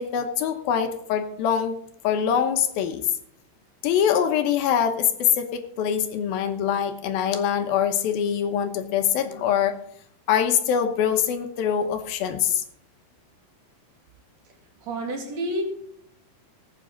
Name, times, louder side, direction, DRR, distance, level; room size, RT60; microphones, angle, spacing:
voice 1, 0.0-1.8 2.0-3.0 3.8-9.8 10.3-12.6, left 8 dB, 75° left, 7 dB, 2.7 m, -24 dB
voice 2, 14.8-15.6, right 1 dB, 45° right, 1 dB, 3.7 m, -29 dB
19.5 x 9.0 x 4.0 m, 0.71 s
omnidirectional pair, 4.6 m